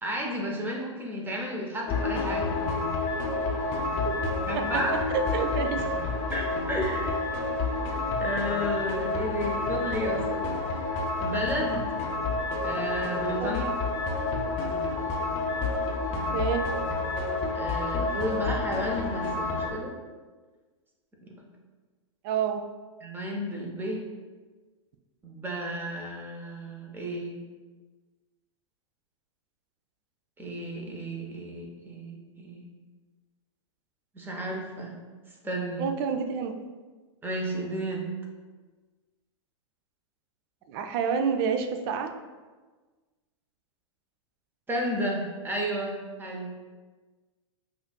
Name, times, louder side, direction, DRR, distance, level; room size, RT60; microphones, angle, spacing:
voice 1, 0.0-2.6 4.5-5.0 5.3-5.4 6.3-7.3 8.2-10.5 11.2-11.9 12.6-13.6 17.5-20.0 21.2-21.3 23.0-24.0 25.2-27.4 30.4-32.7 34.1-35.0 35.4-35.9 37.2-38.1 44.7-46.5, equal, 15° right, -1 dB, 0.7 m, -32 dB
sound 1, 1.9-19.7, left 3 dB, 40° left, 0.6 m, -29 dB
voice 2, 5.1-5.8 13.4-13.6 16.3-16.7 22.2-22.6 35.8-36.5 40.7-42.1, right 6 dB, 50° right, 6 dB, 0.4 m, -28 dB
5.1 x 2.4 x 2.2 m, 1.3 s
hypercardioid pair, 110°, 16 cm